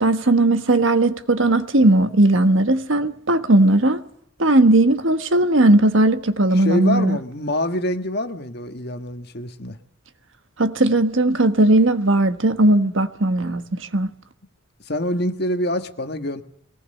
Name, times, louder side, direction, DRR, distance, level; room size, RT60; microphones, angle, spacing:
voice 1, 0.0-4.0 4.4-7.2 10.6-14.1, right 2 dB, 65° right, 1.4 m, -17 dB
voice 2, 6.5-9.8 14.8-16.4, left 1 dB, 50° left, 1.5 m, -25 dB
22.0 x 18.5 x 6.6 m
head